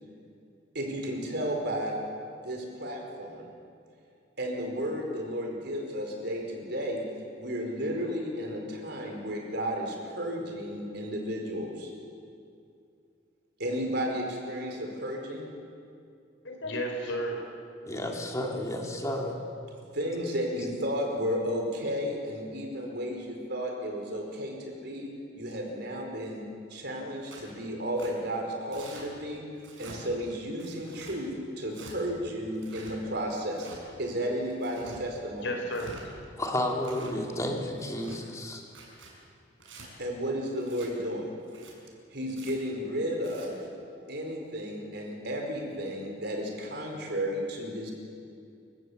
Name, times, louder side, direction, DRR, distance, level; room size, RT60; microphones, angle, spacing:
voice 1, 0.7-2.0 2.4-3.5 4.4-7.0 7.3-11.9 13.6-15.5 19.9-26.4 26.7-29.4 29.8-31.3 31.6-35.5 40.0-41.3 42.1-43.6 44.1-47.9, equal, 60° right, 1 dB, 4.7 m, -33 dB
voice 2, 16.4-17.5 35.4-36.1, equal, 75° left, 3 dB, 4.6 m, -33 dB
voice 3, 17.9-19.4 36.4-38.6, left 1 dB, 15° left, 1 dB, 2.8 m, -31 dB
Tearing, 27.3-27.5 28.0-28.1 28.7-29.1 29.6-30.0 30.6-31.2 31.7-31.9 32.6-32.9 33.5-33.8 34.5-35.0 35.6-36.0 36.6-37.2 37.7-38.2 38.7-39.1 39.6-39.9 40.6-40.9 41.4-41.7 42.3-42.5 43.1-43.5, right 3 dB, 85° right, 6.4 m, -48 dB
28.5 x 15.5 x 8.1 m, 2.4 s
head